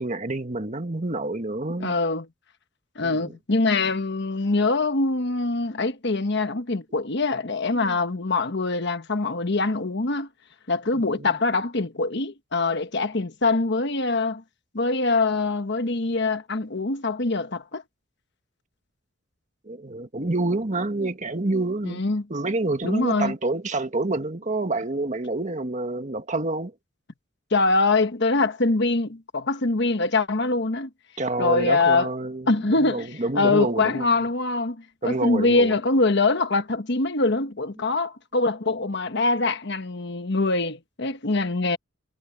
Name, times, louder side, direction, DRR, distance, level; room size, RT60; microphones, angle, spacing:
voice 1, 0.0-2.0 3.0-3.3 7.7-8.0 10.9-11.4 19.6-22.0 22.3-26.7 31.2-34.1 35.0-35.8, right 2 dB, 35° right, 1.7 m, -28 dB
voice 2, 1.8-2.3 2.9-10.3 10.7-14.4 14.7-17.8 21.8-22.2 22.8-23.3 27.5-30.9 31.4-32.1 32.5-34.8 35.0-41.8, left 3 dB, 55° left, 1.3 m, -24 dB
head